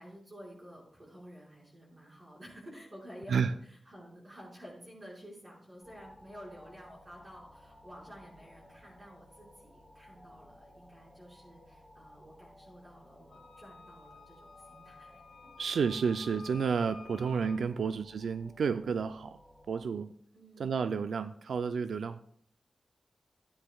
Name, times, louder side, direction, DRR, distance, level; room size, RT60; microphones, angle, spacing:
voice 1, 0.0-15.5 20.3-20.8, equal, 25° right, -5 dB, 4.8 m, -52 dB
sound 1, 5.8-19.8, left 1 dB, ahead, 2.9 m, -58 dB
Wind instrument woodwind instrument, 13.3-17.6, left 5 dB, 85° left, 2.8 m, -53 dB
voice 2, 15.6-19.4 19.7-20.1 20.6-22.2, right 6 dB, 85° right, 11 dB, 0.3 m, -31 dB
15.0 x 9.6 x 2.3 m, 0.64 s
wide cardioid pair, 175°, 0 cm